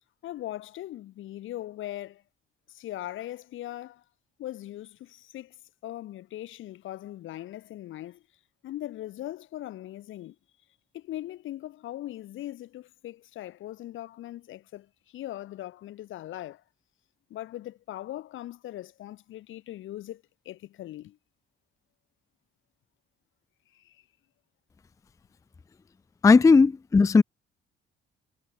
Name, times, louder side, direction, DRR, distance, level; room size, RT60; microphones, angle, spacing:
voice 1, 0.2-2.2 2.7-4.0 4.4-5.6 5.8-8.2 8.6-10.4 10.9-16.6 17.3-21.2 23.7-24.0, left 14 dB, 80° left, 1.8 m, -40 dB
voice 2, 26.2-27.2, left 4 dB, 15° left, 0.4 m, -17 dB
cardioid pair, 90°, 20 cm